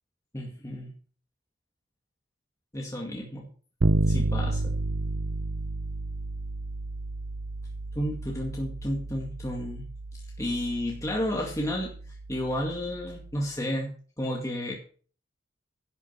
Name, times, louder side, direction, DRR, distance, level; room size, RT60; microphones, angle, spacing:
voice 1, 0.3-0.9 2.7-3.5 4.1-4.7 8.0-9.8 10.4-13.9 14.2-14.7, equal, 15° left, -2 dB, 2.2 m, -32 dB
Bass guitar, 3.8-13.5, right 2 dB, 65° right, 0.7 m, -31 dB
11.0 x 9.4 x 5.8 m, 0.43 s
head